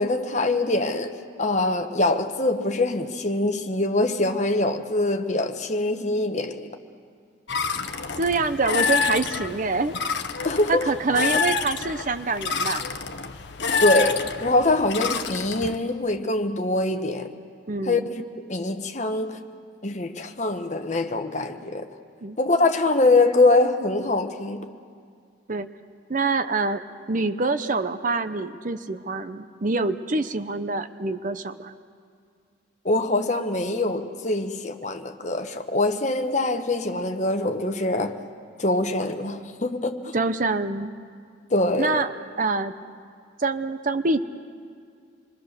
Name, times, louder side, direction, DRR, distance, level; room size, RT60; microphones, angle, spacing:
voice 1, 0.0-6.7 10.4-10.9 13.8-17.3 17.9-19.4 19.8-21.9 22.4-24.7 32.8-38.2 38.6-40.1 41.5-42.0, left 2 dB, 35° left, 1.1 m, -24 dB
sound 1, 7.5-15.8, left 5 dB, 60° left, 0.9 m, -28 dB
voice 2, 8.2-10.0 10.7-12.8 17.7-18.1 22.2-22.4 25.5-25.7 26.1-26.8 27.1-31.7 40.1-40.9 41.8-42.1 42.4-42.7 43.4-44.2, right 3 dB, 40° right, 0.7 m, -25 dB
27.5 x 22.5 x 6.7 m
head